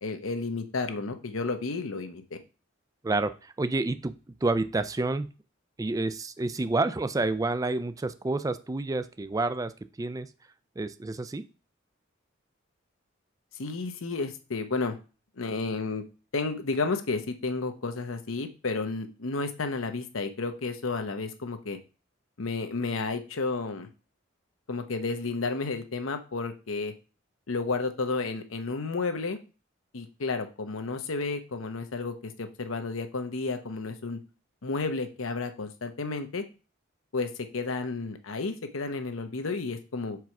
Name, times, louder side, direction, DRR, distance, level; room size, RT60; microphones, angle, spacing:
voice 1, 0.0-2.4 13.5-15.0 15.4-16.0 16.3-21.8 22.4-23.9 24.7-26.9 27.5-29.4 29.9-34.2 34.6-36.4 37.1-40.2, left 3 dB, 80° left, 7 dB, 0.9 m, -32 dB
voice 2, 3.0-5.3 5.8-10.3 10.8-11.4, right 2 dB, 15° right, 13 dB, 0.3 m, -29 dB
4.7 x 4.7 x 5.9 m, 0.34 s
head